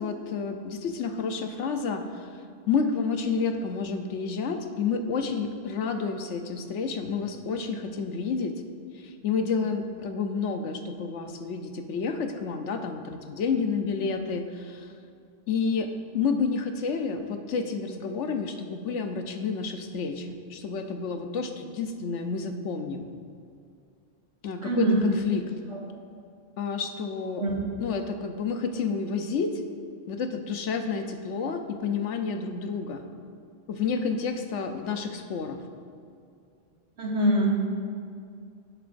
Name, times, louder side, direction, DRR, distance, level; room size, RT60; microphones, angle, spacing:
voice 1, 0.0-2.3 2.7-8.5 8.9-14.9 15.5-23.1 24.4-25.5 26.6-27.4 27.8-29.6 30.1-33.0 33.7-35.6, left 5 dB, 75° left, 6 dB, 1.0 m, -30 dB
voice 2, 24.6-24.9 25.7-25.8 27.4-27.5 37.0-37.6, right 1 dB, 65° right, -5 dB, 2.4 m, -24 dB
17.0 x 7.8 x 2.6 m, 2.4 s
omnidirectional pair, 1.3 m